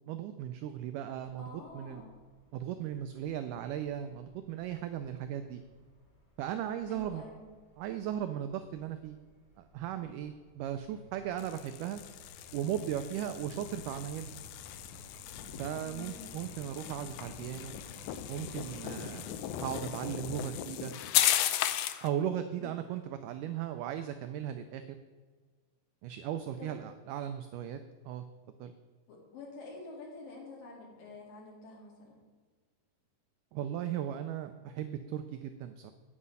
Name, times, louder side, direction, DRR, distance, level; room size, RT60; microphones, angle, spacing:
voice 1, 0.1-2.0 2.5-5.6 6.4-7.2 7.8-9.2 9.6-12.0 12.5-14.3 15.6-17.7 18.3-19.4 19.6-20.9 22.0-25.0 26.0-27.8 28.1-28.3 28.6-28.7 33.5-35.9, right 10 dB, 90° right, 9 dB, 1.8 m, -37 dB
sound 1, 1.2-20.0, equal, 25° left, 3.0 m, -56 dB
voice 2, 1.4-2.1 6.9-7.5 15.8-16.3 22.6-22.7 26.6-26.7 29.1-32.2, left 3 dB, 70° left, -2 dB, 3.7 m, -48 dB
sound 2, 11.4-22.1, left 12 dB, 90° left, 2.4 m, -36 dB
8.6 x 8.1 x 5.5 m, 1.5 s
omnidirectional pair, 4.2 m